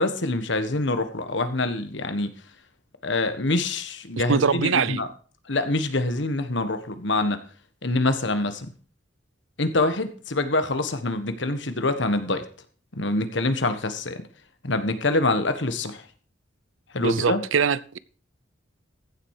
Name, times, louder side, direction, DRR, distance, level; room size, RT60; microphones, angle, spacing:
voice 1, 0.0-2.3 3.0-5.1 5.5-7.4 7.8-8.7 9.6-12.4 12.9-14.2 14.6-16.0 16.9-17.4, left 2 dB, 60° left, 1.4 m, -25 dB
voice 2, 4.3-5.0 17.0-18.0, right 6 dB, 80° right, 0.6 m, -23 dB
15.0 x 7.6 x 4.9 m
head